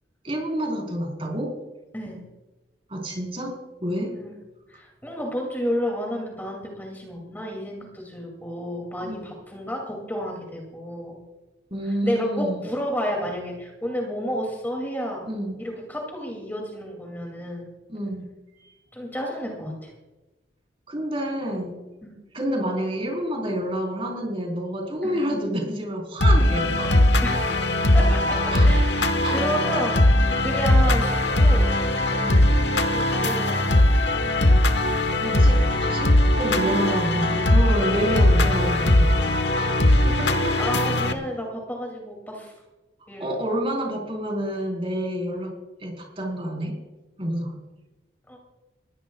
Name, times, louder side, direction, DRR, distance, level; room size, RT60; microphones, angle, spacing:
voice 1, 0.2-1.5 2.9-3.6 3.8-4.1 9.0-9.3 11.7-12.7 15.3-15.6 17.9-18.3 18.6-18.7 20.9-21.8 22.3-26.9 28.5-28.7 29.2-29.4 32.2-32.5 35.2-35.6 35.8-39.3 39.9-40.6 43.2-46.8 47.2-47.6, equal, 30° right, 0 dB, 4.2 m, -28 dB
voice 2, 4.7-11.2 11.8-15.2 15.6-17.7 18.9-19.9 22.0-22.2 25.0-25.3 27.2-28.4 28.6-30.1 30.4-31.7 32.9-34.0 40.6-42.5 43.1-43.3 48.3-48.4, equal, 10° left, -1 dB, 2.6 m, -31 dB
sound 1, 26.2-41.1, left 1 dB, 65° left, 1.2 m, -20 dB
21.5 x 16.5 x 2.4 m, 1.1 s
head